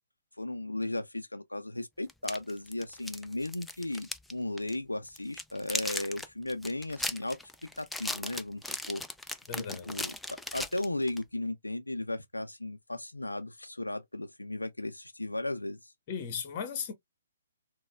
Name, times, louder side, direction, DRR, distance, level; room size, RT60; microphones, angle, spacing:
voice 1, 0.4-7.4 7.8-8.6 8.9-9.0 9.3-15.9, left 2 dB, 90° left, 0.3 m, -36 dB
sound 1, 2.1-4.3 4.6-4.8 5.1-11.2, left 2 dB, 5° left, 0.3 m, -37 dB
voice 2, 9.5-9.9 16.1-16.9, left 6 dB, 35° left, 0.9 m, -36 dB
4.0 x 2.1 x 2.2 m
figure-of-eight pair, 130°, 0 cm